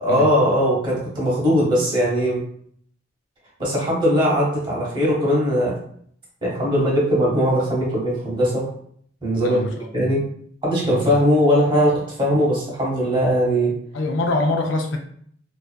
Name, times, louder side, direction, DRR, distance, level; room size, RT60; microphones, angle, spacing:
voice 1, 0.0-2.4 3.6-5.8 6.4-8.7 9.2-9.6 9.9-10.2 10.6-13.8, equal, 25° right, -4 dB, 0.8 m, -20 dB
voice 2, 9.4-10.1 10.8-11.2 13.9-15.0, left 2 dB, 70° left, 3 dB, 0.4 m, -24 dB
2.5 x 2.4 x 2.2 m, 0.63 s
head